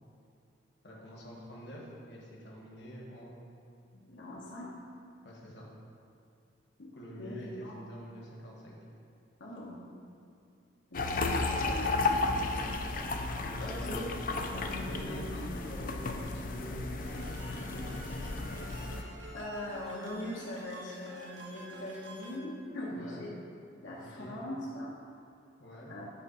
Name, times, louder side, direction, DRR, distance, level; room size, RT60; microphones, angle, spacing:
voice 1, 0.8-3.4 5.2-5.6 6.9-7.5 7.7-8.8 13.6-14.0 14.8-18.2 22.9-23.3 23.8-24.4 25.6-25.9, equal, 65° left, -4 dB, 1.3 m, -46 dB
voice 2, 3.9-4.7 6.8-6.9 7.2-7.3 7.6-7.7 9.4-9.8 10.9-12.1 13.6-14.0 14.5-15.4 19.3-23.3 23.8-24.9 25.9-26.0, left 1 dB, 85° left, -6 dB, 1.1 m, -41 dB
sound 1, 10.9-19.0, left 3 dB, 45° left, 0.4 m, -33 dB
sound 2, 17.0-22.4, right 1 dB, 80° right, 1.0 m, -49 dB
8.2 x 3.7 x 5.5 m, 2.4 s
head